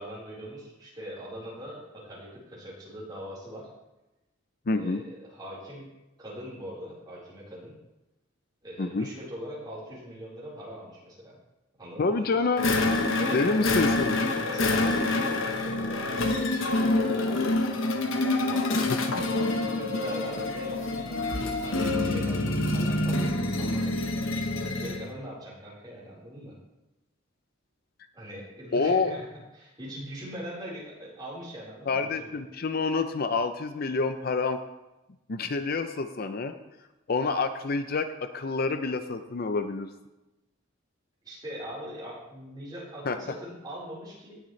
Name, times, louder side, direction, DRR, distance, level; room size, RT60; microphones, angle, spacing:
voice 1, 0.0-3.7 4.7-5.9 6.2-7.7 8.6-11.3 11.8-12.4 13.1-13.8 14.3-17.6 18.2-21.3 21.6-24.0 24.7-26.6 28.1-29.3 29.5-32.2 41.2-44.4, equal, 20° right, -7 dB, 4.1 m, -41 dB
voice 2, 4.7-5.0 8.8-9.1 12.0-12.7 13.3-14.2 18.9-19.0 28.7-29.1 31.9-34.6 35.3-36.5 37.1-39.9 43.0-43.2, left 3 dB, 45° left, 9 dB, 0.5 m, -27 dB
sound 1, 12.6-25.1, left 2 dB, 75° left, 1.1 m, -27 dB
18.5 x 6.7 x 3.2 m, 1.0 s
head